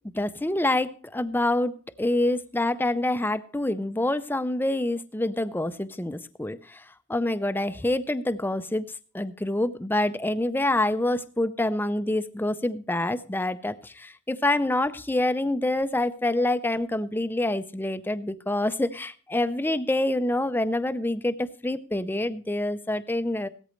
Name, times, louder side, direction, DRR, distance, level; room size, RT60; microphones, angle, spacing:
voice 1, 0.1-8.9 9.1-23.5, left 1 dB, 10° left, 13 dB, 0.5 m, -26 dB
17.0 x 13.5 x 3.1 m, 0.41 s
head